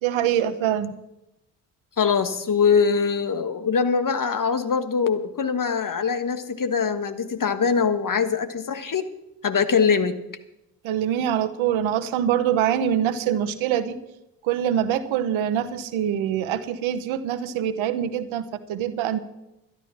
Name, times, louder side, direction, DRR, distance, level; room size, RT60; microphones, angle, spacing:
voice 1, 0.0-0.9 10.8-14.0 14.4-19.2, right 10 dB, 70° right, 12 dB, 1.1 m, -24 dB
voice 2, 2.0-9.1 9.4-10.2, left 6 dB, 40° left, 11 dB, 1.4 m, -22 dB
12.0 x 11.0 x 6.0 m, 0.90 s
hypercardioid pair, 40°, 49 cm